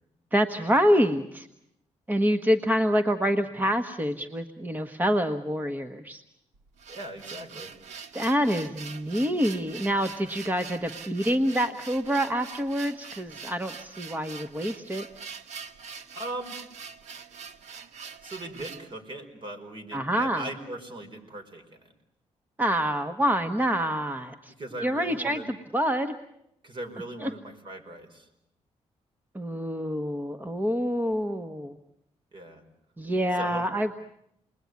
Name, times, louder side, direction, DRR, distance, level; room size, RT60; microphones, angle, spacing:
voice 1, 0.3-1.5 2.1-6.2 8.1-15.1 19.9-20.5 22.6-24.5 24.8-25.4 25.7-26.1 27.2-27.3 29.3-31.8 33.0-33.9, equal, 15° right, 8 dB, 1.2 m, -26 dB
sound 1, 6.5-18.9, right 6 dB, 85° right, 1.6 m, -43 dB
voice 2, 6.9-7.7 8.1-8.2 16.1-16.6 18.2-21.9 24.5-25.5 26.6-28.3 32.3-32.6 33.3-33.6, right 1 dB, 45° right, 5 dB, 5.4 m, -39 dB
29.5 x 21.0 x 9.5 m, 0.81 s
cardioid pair, 100°, 12 cm